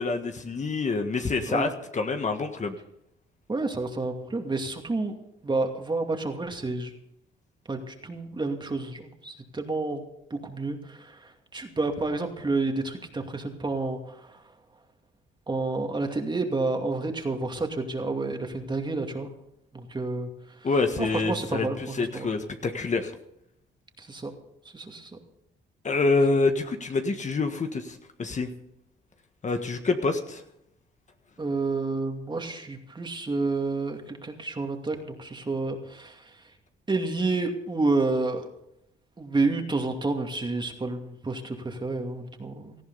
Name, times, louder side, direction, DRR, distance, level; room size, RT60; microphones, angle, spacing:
voice 1, 0.0-2.8 20.6-21.7 21.9-23.1 25.8-28.5 29.4-30.4, left 3 dB, 35° left, 6 dB, 1.6 m, -26 dB
voice 2, 3.5-5.1 5.4-6.9 7.7-10.0 10.3-14.4 15.5-19.3 19.7-20.3 21.0-22.3 24.0-24.3 24.7-25.1 31.4-36.3 36.9-38.5 39.2-42.8, right 3 dB, 25° right, 4 dB, 2.5 m, -29 dB
18.0 x 14.0 x 4.1 m, 0.78 s
cardioid pair, 90°, 20 cm